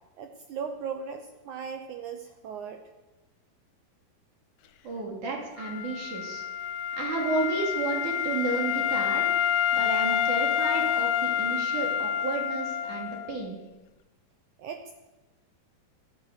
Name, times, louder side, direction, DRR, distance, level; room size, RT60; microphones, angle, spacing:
voice 1, 0.2-2.8 14.6-14.9, right 6 dB, 80° right, 6 dB, 1.7 m, -37 dB
voice 2, 4.8-6.4 7.0-9.3 9.7-13.6, right 3 dB, 55° right, 0 dB, 3.8 m, -32 dB
Wind instrument woodwind instrument, 5.6-13.3, left 9 dB, 75° left, 2.8 m, -28 dB
16.5 x 10.0 x 6.7 m, 1.1 s
omnidirectional pair, 4.5 m